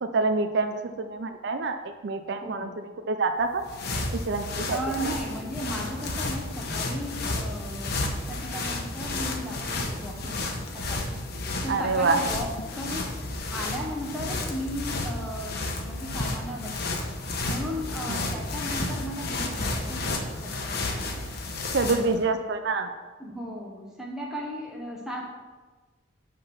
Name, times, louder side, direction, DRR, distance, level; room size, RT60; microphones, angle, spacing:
voice 1, 0.0-3.6 4.3-4.8 5.0-5.1 11.7-12.2 18.1-18.3 21.7-22.9, right 3 dB, 60° right, 7 dB, 0.5 m, -27 dB
voice 2, 2.4-2.7 4.7-11.1 11.6-12.5 12.7-13.1 13.5-17.0 17.4-21.2 21.7-22.3 23.2-25.3, equal, 5° right, -3 dB, 1.0 m, -36 dB
sound 1, 3.4-22.2, left 2 dB, 55° left, 1.0 m, -32 dB
11.0 x 3.8 x 5.9 m, 1.3 s
head